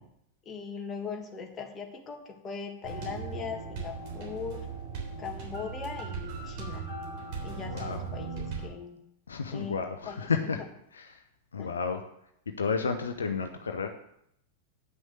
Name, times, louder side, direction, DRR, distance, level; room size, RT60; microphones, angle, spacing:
voice 1, 0.5-4.7 5.2-6.9 7.4-9.0 9.5-9.8 10.1-10.3 10.6-10.7 11.6-11.7, left 6 dB, 25° left, 3 dB, 1.8 m, -39 dB
sound 1, 2.8-8.7, right 5 dB, 45° right, 3.5 m, -38 dB
voice 2, 7.6-8.0 9.3-10.6 10.9-11.2 11.5-12.0 12.6-13.9, left 5 dB, 70° left, 6 dB, 0.8 m, -31 dB
9.6 x 6.3 x 6.4 m, 0.75 s
figure-of-eight pair, 90°, 0 cm